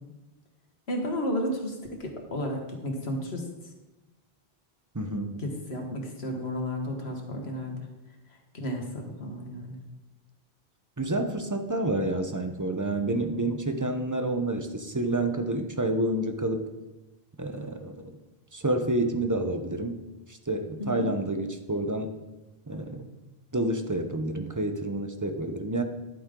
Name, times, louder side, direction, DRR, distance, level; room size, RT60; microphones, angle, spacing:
voice 1, 0.9-3.7 5.3-7.9 8.5-9.8 20.8-21.1, equal, 80° left, 2 dB, 1.9 m, -33 dB
voice 2, 4.9-5.4 11.0-16.6 17.4-17.9 18.5-20.0 20.5-22.1 22.7-23.0 23.5-25.8, right 1 dB, 20° right, 6 dB, 0.7 m, -29 dB
11.0 x 8.6 x 3.7 m, 1.1 s
omnidirectional pair, 1.1 m